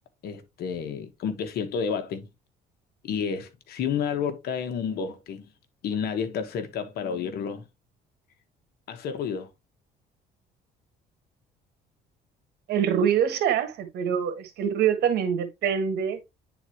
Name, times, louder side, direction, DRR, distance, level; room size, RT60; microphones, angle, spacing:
voice 1, 0.2-2.3 3.0-5.5 5.8-7.7 8.9-9.5, left 7 dB, 70° left, 1.5 m, -30 dB
voice 2, 12.7-16.2, right 8 dB, 75° right, 1.7 m, -25 dB
9.5 x 4.1 x 3.1 m
cardioid pair, 110°, 17 cm